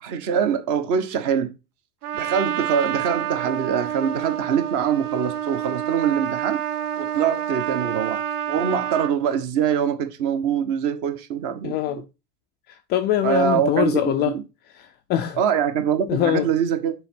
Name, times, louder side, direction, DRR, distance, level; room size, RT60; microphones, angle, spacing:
voice 1, 0.0-1.5 2.1-6.6 7.0-12.0 13.2-14.4 15.4-16.9, right 8 dB, 40° right, 1.3 m, -24 dB
Trumpet, 2.0-9.1, right 10 dB, 70° right, 0.9 m, -28 dB
voice 2, 11.6-12.0 12.7-14.4 14.7-15.4 16.1-16.5, left 12 dB, 25° left, 0.4 m, -23 dB
6.3 x 4.0 x 5.7 m
figure-of-eight pair, 80°, 47 cm